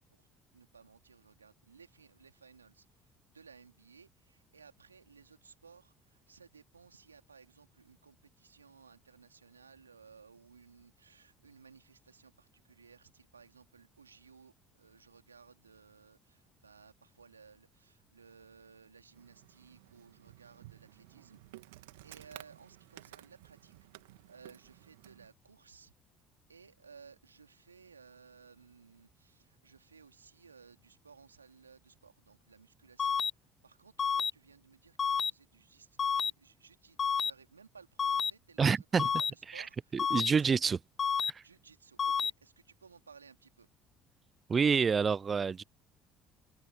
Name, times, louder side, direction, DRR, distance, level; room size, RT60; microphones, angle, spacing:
voice 1, 0.5-2.8 3.3-21.4 21.8-23.7 24.3-25.9 26.5-33.2 33.6-40.7 41.4-43.7, right 5 dB, 85° right, 3.2 m, -59 dB
Insect, 19.1-25.3, right 20 dB, 70° right, 1.8 m, -55 dB
sound 1, 33.0-33.3 34.0-34.3 35.0-35.3 36.0-36.3 37.0-37.3 38.0-38.3 39.0-39.3 40.0-40.3 41.0-41.3 42.0-42.3, left 6 dB, 35° left, 0.6 m, -29 dB
voice 2, 38.6-39.1 39.5-39.7 39.9-40.8 41.3-41.4 44.5-45.6, right 5 dB, 30° right, 0.4 m, -28 dB
figure-of-eight pair, 55°, 0 cm